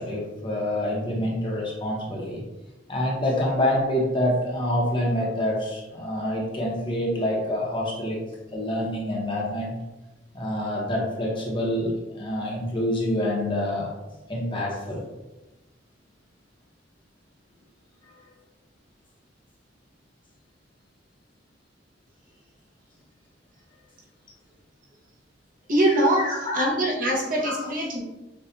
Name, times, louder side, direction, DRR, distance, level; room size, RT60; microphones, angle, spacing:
voice 1, 0.0-2.4 2.9-8.2 8.5-9.7 10.3-13.9 14.3-15.1 18.1-18.2 26.2-26.7 27.4-27.6, left 1 dB, 30° left, -3 dB, 0.9 m, -27 dB
voice 2, 25.7-26.3 26.5-28.0, right 1 dB, 50° right, -3 dB, 1.0 m, -23 dB
6.7 x 2.4 x 2.7 m, 1.0 s
head